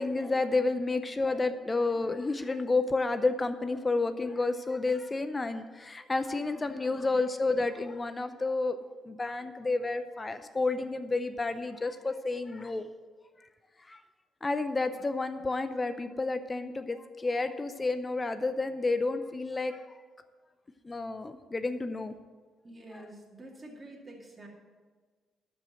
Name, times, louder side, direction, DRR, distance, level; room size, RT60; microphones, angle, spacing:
voice 1, 0.0-12.9 13.9-14.0 14.4-19.9 20.8-22.1, left 3 dB, 25° left, 10 dB, 0.6 m, -30 dB
voice 2, 6.4-7.2 22.6-24.5, right 1 dB, 25° right, -2 dB, 2.3 m, -49 dB
12.5 x 5.1 x 7.7 m, 1.4 s
cardioid pair, 90°, 0 cm